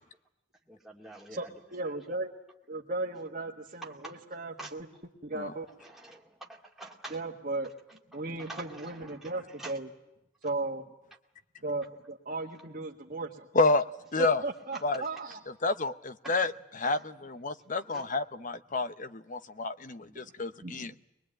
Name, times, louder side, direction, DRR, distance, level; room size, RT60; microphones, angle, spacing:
voice 1, 0.7-1.5 4.0-4.2 4.6-4.7 5.8-7.2 8.1-9.7 16.8-17.0 17.9-18.1, right 2 dB, ahead, -2 dB, 2.3 m, -47 dB
voice 2, 1.3-2.3 2.7-4.9 5.2-5.7 7.1-7.7 8.1-9.9 10.4-10.9 11.6-13.5 14.2-15.4 20.1-20.2 20.6-21.0, right 2 dB, 45° right, -2 dB, 1.7 m, -36 dB
voice 3, 14.1-14.4 14.8-15.0 15.6-20.9, left 3 dB, 40° left, 12 dB, 0.8 m, -29 dB
22.5 x 22.0 x 9.0 m, 0.92 s
head